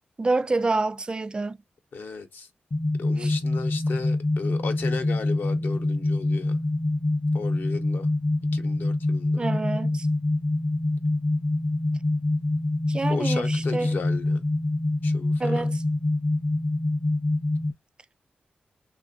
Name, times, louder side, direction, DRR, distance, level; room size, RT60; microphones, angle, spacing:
voice 1, 0.2-1.6 3.2-3.3 9.4-10.1 12.9-13.9 15.4-15.8, right 3 dB, 25° right, 0.3 m, -27 dB
voice 2, 1.9-2.5 3.0-6.6 7.3-8.1 8.5-9.5 13.1-14.5 15.0-15.7, left 4 dB, 70° left, 0.8 m, -35 dB
sound 1, 2.7-17.7, left 2 dB, 35° left, 0.5 m, -25 dB
3.3 x 2.4 x 2.6 m
cardioid pair, 85°, 3 cm